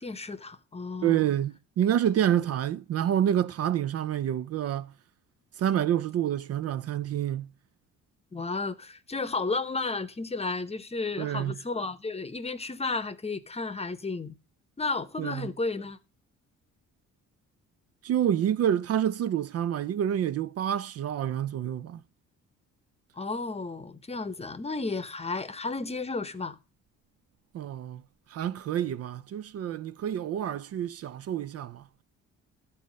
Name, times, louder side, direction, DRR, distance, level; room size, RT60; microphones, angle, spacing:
voice 1, 0.0-1.2 8.3-14.4 14.8-16.0 23.2-26.6, left 3 dB, 20° left, 0.8 m, -33 dB
voice 2, 1.0-4.9 5.6-7.5 11.2-11.6 15.2-15.5 18.0-22.0 27.5-28.0 28.3-31.9, right 10 dB, 55° right, 0.4 m, -28 dB
11.5 x 4.2 x 6.3 m
cardioid pair, 90°, 30 cm